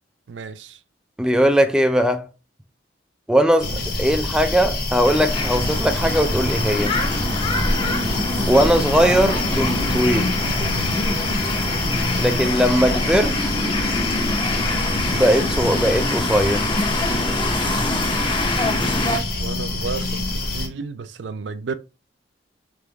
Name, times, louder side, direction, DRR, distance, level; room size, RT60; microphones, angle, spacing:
voice 1, 0.3-0.8 3.7-3.8 7.7-8.1 12.2-12.4 19.4-21.7, right 5 dB, 80° right, 0.4 m, -33 dB
voice 2, 1.2-2.3 3.3-3.7 4.0-6.9 8.5-10.4 12.2-13.4 15.1-16.7, equal, 5° right, 0.4 m, -19 dB
sound 1, 3.6-20.7, left 2 dB, 60° left, 1.0 m, -26 dB
sound 2, 5.0-19.2, left 2 dB, 25° left, 0.7 m, -25 dB
sound 3, 5.9-18.0, left 2 dB, 85° left, 0.9 m, -38 dB
3.4 x 3.0 x 3.3 m
head